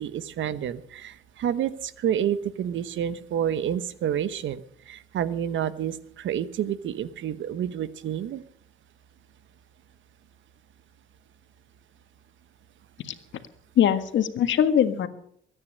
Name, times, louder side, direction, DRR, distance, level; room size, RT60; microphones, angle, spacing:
voice 1, 0.0-4.6 4.9-8.4, right 9 dB, 75° right, 14 dB, 1.1 m, -29 dB
voice 2, 13.8-15.1, left 9 dB, 70° left, 9 dB, 1.7 m, -21 dB
22.5 x 9.6 x 6.6 m, 0.67 s
cardioid pair, 90°, 20 cm